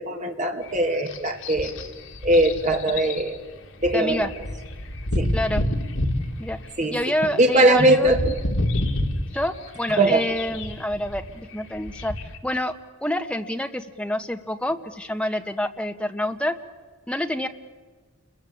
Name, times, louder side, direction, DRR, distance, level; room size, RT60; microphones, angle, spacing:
voice 1, 0.0-1.7 2.2-3.4 3.8-4.3 5.1-5.3 6.8-6.9 7.4-8.3 9.9-10.2, right 1 dB, 35° right, 4 dB, 2.9 m, -20 dB
sound 1, 0.6-12.4, left 1 dB, 75° left, 3.0 m, -29 dB
voice 2, 3.9-4.3 5.3-5.6 6.4-6.6 6.9-8.1 9.3-12.2 12.4-12.7 13.0-16.5 17.1-17.5, left 1 dB, 5° left, 6 dB, 1.5 m, -27 dB
29.5 x 22.0 x 8.8 m, 1.3 s
head